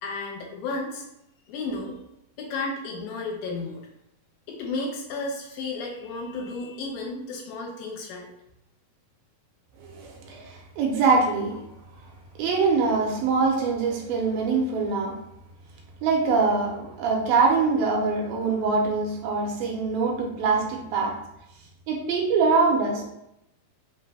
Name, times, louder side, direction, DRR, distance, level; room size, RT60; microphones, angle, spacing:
voice 1, 0.0-1.0 1.5-2.0 2.4-3.9 4.5-8.3, left 3 dB, 75° left, -1 dB, 2.5 m, -33 dB
voice 2, 9.8-11.6 12.4-15.2 16.0-21.2 21.9-23.0, right 4 dB, 80° right, 0 dB, 2.4 m, -23 dB
5.6 x 2.6 x 3.3 m, 0.83 s
omnidirectional pair, 4.2 m